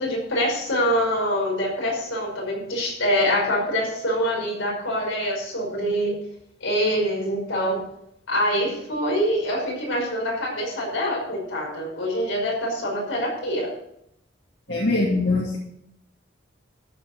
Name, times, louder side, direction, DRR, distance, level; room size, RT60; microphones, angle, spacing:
voice 1, 0.0-6.1 6.6-7.9 8.3-13.7, equal, 85° left, -2 dB, 5.5 m, -25 dB
voice 2, 14.7-15.6, left 2 dB, 60° left, -4 dB, 2.3 m, -22 dB
13.5 x 5.5 x 7.8 m, 0.76 s
head